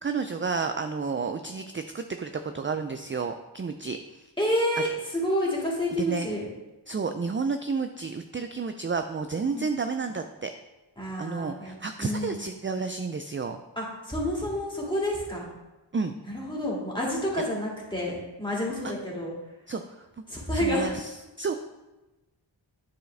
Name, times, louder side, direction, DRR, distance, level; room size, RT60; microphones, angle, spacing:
voice 1, 0.0-4.3 6.0-6.3 6.9-10.5 11.2-13.6 15.9-16.1 18.8-18.9 19.7-20.1 20.5-21.1 21.4-21.5, right 4 dB, 30° right, 7 dB, 0.3 m, -31 dB
voice 2, 4.4-6.5 9.5-9.7 11.0-11.7 12.0-12.4 13.8-15.5 16.3-19.3 20.3-20.9, equal, 10° left, -4 dB, 2.3 m, -29 dB
10.5 x 4.6 x 3.3 m, 1.1 s
wide cardioid pair, 45°, 46 cm